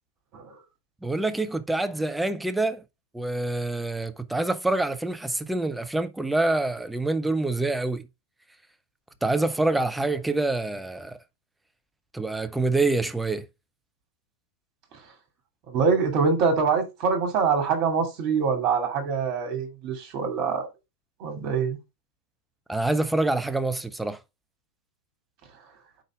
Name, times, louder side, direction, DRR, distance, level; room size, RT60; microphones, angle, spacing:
voice 1, 1.0-2.8 3.1-8.1 9.2-11.2 12.1-13.5 22.7-24.2, right 2 dB, 5° right, 0.6 m, -26 dB
voice 2, 15.7-20.7 21.2-21.8, right 5 dB, 40° right, 2.4 m, -24 dB
5.1 x 4.0 x 4.7 m
figure-of-eight pair, 90°, 0 cm